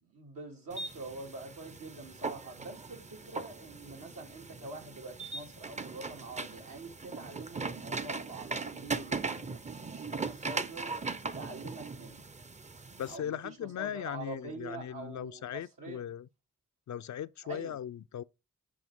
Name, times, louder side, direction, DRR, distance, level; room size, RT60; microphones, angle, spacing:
voice 1, 0.0-11.0 11.3-12.2 13.1-16.0 17.4-17.8, right 3 dB, 80° right, 2.6 m, -45 dB
sound 1, 0.7-13.2, right 4 dB, 20° right, 0.6 m, -39 dB
voice 2, 13.0-16.3 16.9-18.2, left 10 dB, 60° left, 0.5 m, -38 dB
8.5 x 4.5 x 3.7 m
cardioid pair, 55°, 33 cm